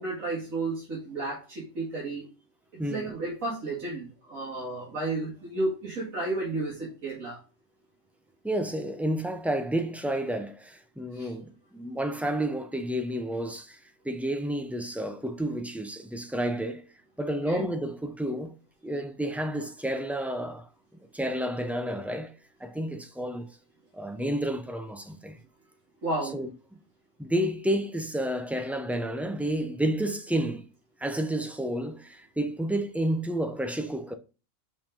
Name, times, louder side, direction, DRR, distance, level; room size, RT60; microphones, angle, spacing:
voice 1, 0.0-2.3 2.7-7.4 11.1-11.3 17.5-17.6 26.0-26.4, right 2 dB, 75° right, 2.5 m, -32 dB
voice 2, 2.8-3.1 8.4-16.9 17.2-18.5 18.8-20.7 21.1-23.6 23.9-25.4 26.3-26.5 27.2-30.7 31.0-34.1, right 1 dB, ahead, 0.4 m, -30 dB
5.8 x 5.4 x 5.1 m
omnidirectional pair, 1.4 m